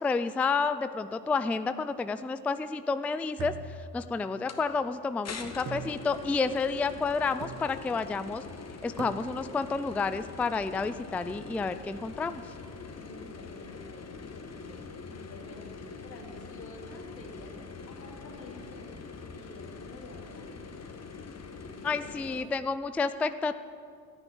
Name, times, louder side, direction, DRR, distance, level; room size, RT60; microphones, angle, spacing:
voice 1, 0.0-8.4 8.8-12.4 21.8-23.5, left 4 dB, 5° left, 12 dB, 0.4 m, -30 dB
sound 1, 3.4-4.6 5.7-6.5 7.4-8.0 9.0-9.6, right 7 dB, 35° right, 0.9 m, -43 dB
sound 2, 4.5-4.6 5.2-22.4, left 4 dB, 30° left, 1.8 m, -44 dB
voice 2, 13.0-18.9 19.3-21.0 21.6-21.9 22.2-22.4, left 2 dB, 85° left, 0 dB, 2.7 m, -50 dB
14.0 x 10.5 x 9.3 m, 2.3 s
hypercardioid pair, 60°, 50 cm